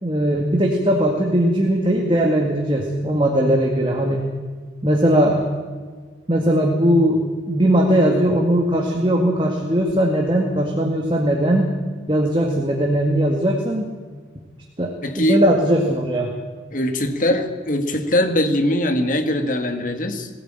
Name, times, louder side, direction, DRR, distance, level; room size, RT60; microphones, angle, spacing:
voice 1, 0.0-4.3 4.8-5.4 6.3-7.2 7.5-11.7 12.1-13.9 14.8-16.3, right 1 dB, 25° right, 1 dB, 2.0 m, -19 dB
voice 2, 15.0-15.4 16.7-20.3, left 1 dB, 45° left, 6 dB, 1.9 m, -21 dB
21.0 x 15.0 x 9.0 m, 1.5 s
head